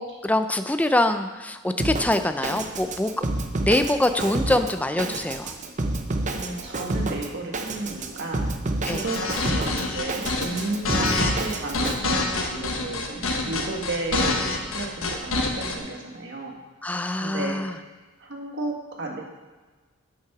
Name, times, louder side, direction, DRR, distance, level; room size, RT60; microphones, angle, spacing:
voice 1, 0.0-3.3 3.6-5.5 8.9-9.0 16.8-17.7, left 1 dB, 5° left, 8 dB, 0.5 m, -24 dB
Drum kit, 1.8-12.0, right 2 dB, 35° right, 0.8 m, -29 dB
voice 2, 6.3-8.5 8.8-11.1 11.4-16.6 17.2-17.7 18.2-19.2, right 2 dB, 60° right, 1 dB, 1.8 m, -33 dB
sound 1, 8.8-15.7, left 3 dB, 80° left, 1.3 m, -26 dB
8.7 x 7.6 x 6.0 m, 1.3 s
head